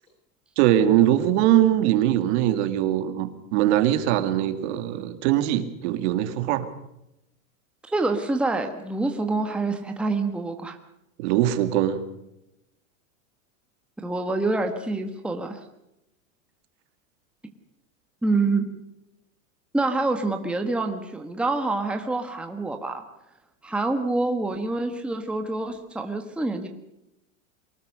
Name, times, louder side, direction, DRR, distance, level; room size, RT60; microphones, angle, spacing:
voice 1, 0.6-6.7 11.2-12.0, right 12 dB, 55° right, 9 dB, 2.4 m, -22 dB
voice 2, 7.8-10.8 14.0-15.6 18.2-18.7 19.7-23.0 23.6-26.7, right 3 dB, 5° right, 4 dB, 1.4 m, -26 dB
24.0 x 19.0 x 6.6 m, 0.86 s
supercardioid pair, 150°, 39 cm